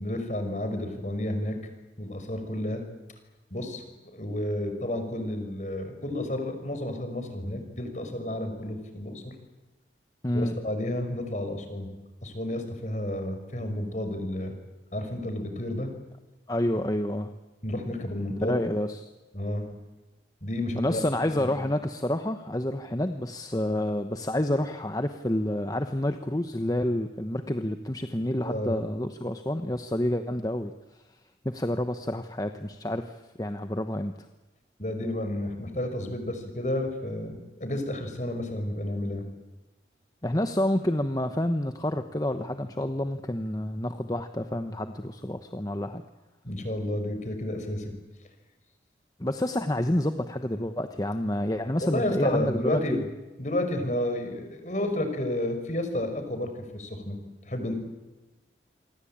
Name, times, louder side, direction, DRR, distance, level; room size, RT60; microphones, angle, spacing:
voice 1, 0.0-1.6 2.0-2.8 3.5-3.8 4.1-9.3 10.3-11.9 12.2-14.5 14.9-15.9 17.6-18.6 19.3-19.6 20.4-21.0 21.4-21.5 28.4-28.7 34.8-39.2 46.4-47.9 51.8-53.0 53.4-57.2 57.4-57.7, left 1 dB, 40° left, 7 dB, 5.3 m, -31 dB
voice 2, 10.2-10.6 16.5-17.3 18.4-19.1 20.8-30.7 31.4-34.1 40.2-46.0 49.2-53.0, left 1 dB, 20° left, 8 dB, 1.0 m, -29 dB
27.5 x 23.5 x 8.8 m, 1.1 s
head